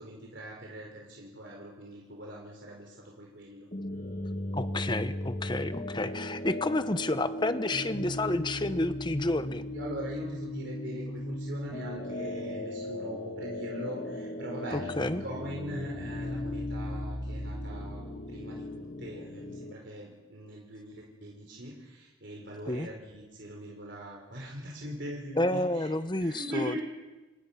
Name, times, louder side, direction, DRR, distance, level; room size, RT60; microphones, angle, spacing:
voice 1, 0.0-3.7 9.7-25.9 26.2-26.8, equal, 55° right, -1 dB, 4.4 m, -41 dB
sound 1, 3.7-19.7, left 1 dB, 40° left, 1.5 m, -37 dB
voice 2, 4.5-9.6 14.7-15.2 22.7-22.9 25.4-26.8, left 2 dB, 20° left, 11 dB, 0.9 m, -30 dB
29.5 x 27.0 x 5.9 m, 1.2 s
head